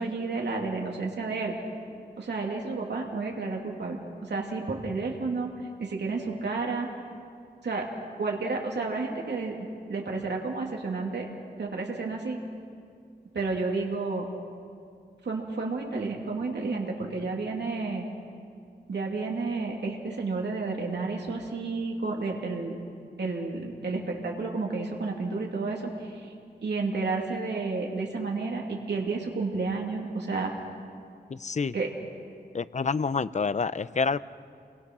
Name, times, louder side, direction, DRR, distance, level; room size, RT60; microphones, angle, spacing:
voice 1, 0.0-1.5 2.2-6.9 7.6-7.9 8.2-11.3 11.6-12.4 13.3-14.3 15.2-18.1 18.9-22.8 23.2-26.3 26.6-30.5 31.7-31.9, right 3 dB, 80° right, 0 dB, 2.8 m, -31 dB
voice 2, 31.3-31.7 32.5-34.2, left 5 dB, 45° left, 15 dB, 0.6 m, -28 dB
29.5 x 22.5 x 6.2 m, 2.3 s
wide cardioid pair, 110°, 17 cm